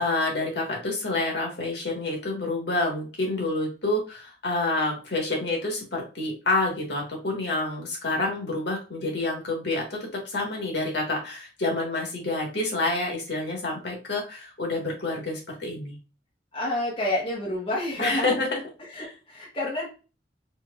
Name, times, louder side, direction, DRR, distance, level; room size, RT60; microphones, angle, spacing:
voice 1, 0.0-10.0 10.2-16.0 18.0-18.6 19.0-19.1, left 2 dB, 75° left, 0 dB, 1.3 m, -28 dB
voice 2, 16.5-18.3 18.8-19.9, left 1 dB, 30° left, -4 dB, 1.1 m, -29 dB
4.4 x 2.7 x 2.3 m, 0.33 s
head